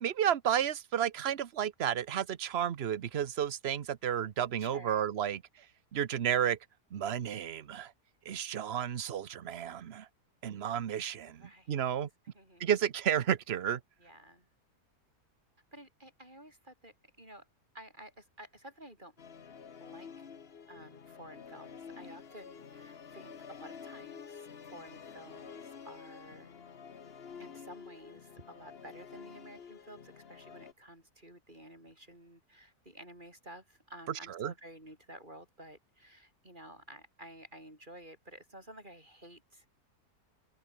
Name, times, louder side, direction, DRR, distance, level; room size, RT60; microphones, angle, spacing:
voice 1, 0.0-5.6 5.9-6.6 6.9-7.9 8.2-10.1 10.4-12.1 12.6-13.8 34.4-34.5, right 9 dB, 50° right, 1.0 m, -32 dB
voice 2, 4.6-5.0 11.3-11.8 12.3-12.7 14.0-14.5 15.7-17.5 17.7-19.1 19.8-20.3 20.7-26.7 27.4-39.7, right 1 dB, 30° right, 8.2 m, -52 dB
Musical instrument, 19.2-30.7, left 6 dB, 40° left, 1.3 m, -49 dB
open air
omnidirectional pair, 1.7 m